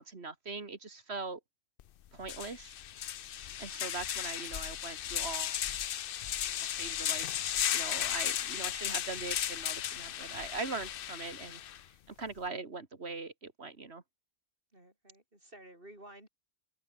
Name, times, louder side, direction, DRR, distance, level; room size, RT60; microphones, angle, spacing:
voice 1, 0.0-1.4 2.1-2.7 3.6-5.6 6.7-7.3 7.7-11.6 12.1-14.0, right 4 dB, 75° right, 2.5 m, -41 dB
sound 1, 1.8-1.9 2.2-11.8, left 11 dB, 60° left, 0.8 m, -35 dB
voice 2, 3.3-3.7 10.2-10.6 14.7-16.3, right 1 dB, 55° right, 7.9 m, -55 dB
open air
omnidirectional pair, 1.1 m